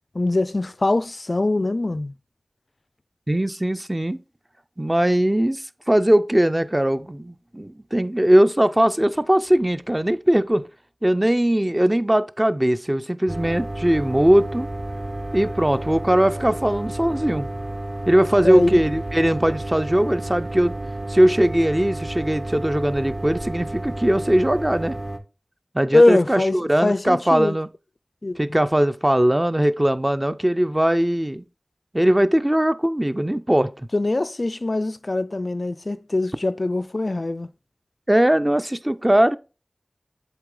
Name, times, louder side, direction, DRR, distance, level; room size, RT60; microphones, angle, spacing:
voice 1, 0.1-2.1 18.4-18.7 25.9-27.6 28.2-28.4 33.9-37.5, left 2 dB, 50° left, 0.3 m, -22 dB
voice 2, 3.3-4.2 4.8-10.6 11.0-14.7 15.3-17.5 18.1-20.7 21.1-25.0 25.7-27.7 28.4-31.4 31.9-33.7 38.1-39.4, right 1 dB, 20° right, 0.4 m, -20 dB
sound 1, 13.3-25.2, right 1 dB, 40° right, 0.8 m, -31 dB
7.9 x 3.3 x 3.7 m
wide cardioid pair, 55°, 0 cm